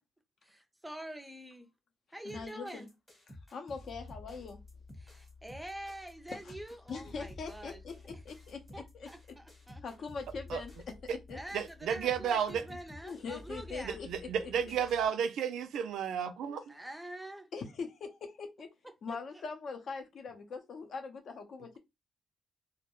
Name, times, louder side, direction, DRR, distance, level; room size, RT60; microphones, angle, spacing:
voice 1, 0.4-1.7 2.1-2.9 5.0-7.8 8.7-9.8 11.3-14.0 15.0-15.1 16.7-17.5 19.1-19.5, right 1 dB, 5° right, 0.4 m, -46 dB
voice 2, 2.2-2.9 3.5-4.6 6.3-6.4 6.9-8.6 8.9-9.1 9.8-11.0 11.3-11.4 13.0-14.1 14.4-14.7 16.5-16.6 17.5-18.7 19.0-21.8, left 5 dB, 55° left, 0.6 m, -42 dB
sound 1, 2.3-15.1, left 2 dB, 15° left, 1.0 m, -51 dB
voice 3, 11.5-12.7 13.8-16.6, right 8 dB, 80° right, 0.4 m, -32 dB
2.3 x 2.1 x 2.8 m
cardioid pair, 130°, 0 cm